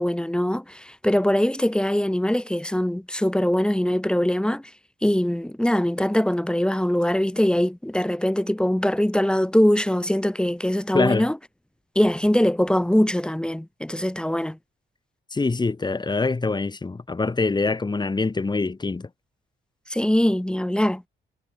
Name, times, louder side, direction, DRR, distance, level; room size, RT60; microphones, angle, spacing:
voice 1, 0.0-4.7 5.0-11.4 12.0-14.6 19.9-21.0, left 1 dB, 5° left, 1.8 m, -22 dB
voice 2, 10.9-11.3 15.3-19.1, left 3 dB, 20° left, 2.3 m, -24 dB
cardioid pair, 90°, 20 cm